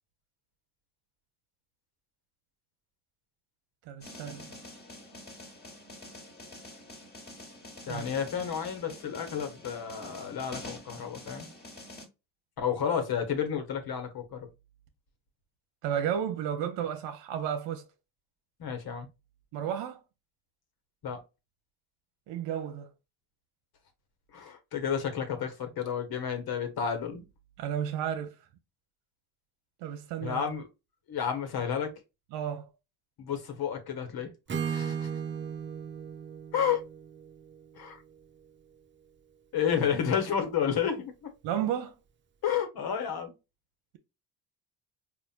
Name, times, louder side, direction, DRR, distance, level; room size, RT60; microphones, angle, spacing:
voice 1, 3.9-4.5 7.9-8.1 15.8-17.9 19.5-20.0 22.3-22.9 27.6-28.3 29.8-30.4 32.3-32.7 41.4-41.9, right 9 dB, 65° right, 0.7 m, -32 dB
sound 1, 4.0-12.1, left 1 dB, 20° left, 1.6 m, -46 dB
voice 2, 7.9-11.5 12.6-14.5 18.6-19.1 21.0-21.2 24.3-27.3 30.2-30.7 31.1-31.9 33.2-35.1 36.5-36.8 37.7-38.0 39.5-41.3 42.4-43.3, left 7 dB, 50° left, 1.3 m, -31 dB
Acoustic guitar / Strum, 34.5-38.4, right 7 dB, 25° right, 0.5 m, -36 dB
4.3 x 2.4 x 2.4 m
supercardioid pair, 70°, 47 cm